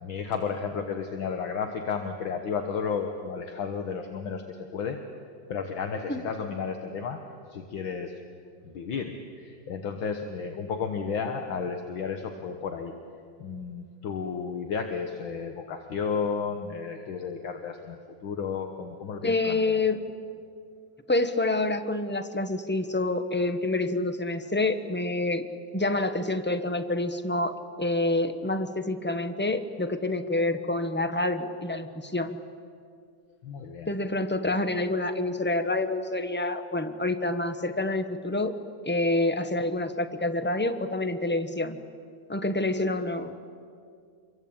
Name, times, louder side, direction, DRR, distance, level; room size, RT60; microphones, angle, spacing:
voice 1, 0.0-5.0 5.5-7.2 7.5-8.1 8.7-12.9 13.4-19.8 33.4-33.9, left 6 dB, 70° left, 5 dB, 2.1 m, -33 dB
voice 2, 19.2-20.0 21.1-25.4 25.7-27.5 27.8-32.4 33.9-38.5 38.9-41.8 42.3-43.4, left 2 dB, 10° left, 9 dB, 0.7 m, -27 dB
27.5 x 23.0 x 8.8 m, 2.3 s
omnidirectional pair, 2.3 m